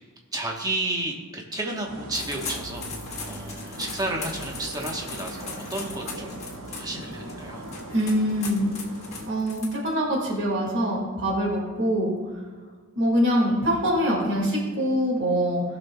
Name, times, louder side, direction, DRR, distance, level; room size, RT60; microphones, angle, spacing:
voice 1, 0.3-2.9 3.2-6.3 6.8-7.6, right 2 dB, 20° right, 0 dB, 1.1 m, -32 dB
sound 1, 1.9-9.3, right 1 dB, 80° right, 1.7 m, -39 dB
sound 2, 2.1-10.1, left 4 dB, 35° left, 1.5 m, -39 dB
voice 2, 7.9-8.7 9.2-12.1 13.0-15.6, equal, 60° right, -2 dB, 2.0 m, -24 dB
18.0 x 6.2 x 2.3 m, 1.5 s
head